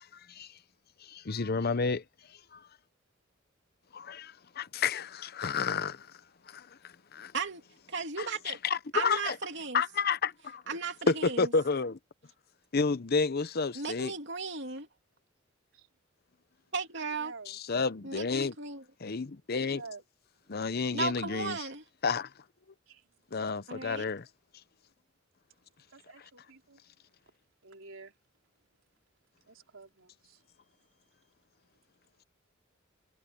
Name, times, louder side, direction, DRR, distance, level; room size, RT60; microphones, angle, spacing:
voice 1, 1.0-2.0 2.5-2.6 3.9-6.1 6.5-7.3 8.2-9.4 9.7-10.6 11.1-12.0 12.7-14.1 17.5-18.5 19.0-19.8 20.5-21.6 22.0-22.3 23.3-24.3, left 4 dB, 50° left, 0.7 m, -30 dB
voice 2, 7.9-8.6 8.9-9.8 10.7-11.5 13.7-14.9 16.7-17.3 18.0-18.8 20.9-21.8 23.7-24.1, right 4 dB, 60° right, 3.1 m, -36 dB
voice 3, 17.2-17.6 19.6-20.0 22.9-23.0 25.9-26.8 27.6-28.1 29.5-31.3, right 3 dB, 80° right, 3.5 m, -50 dB
head